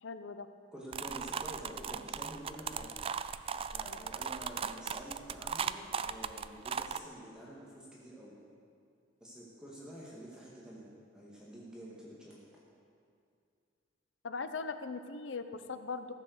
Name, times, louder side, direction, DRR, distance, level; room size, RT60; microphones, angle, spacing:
voice 1, 0.0-0.5 3.8-4.0 14.2-16.1, left 4 dB, 80° left, 10 dB, 0.7 m, -40 dB
voice 2, 0.7-2.9 3.7-8.3 9.2-12.4, right 1 dB, 5° right, -6 dB, 1.8 m, -48 dB
sound 1, 0.9-7.0, right 7 dB, 30° right, 0.3 m, -37 dB
14.5 x 7.7 x 6.6 m, 2.3 s
head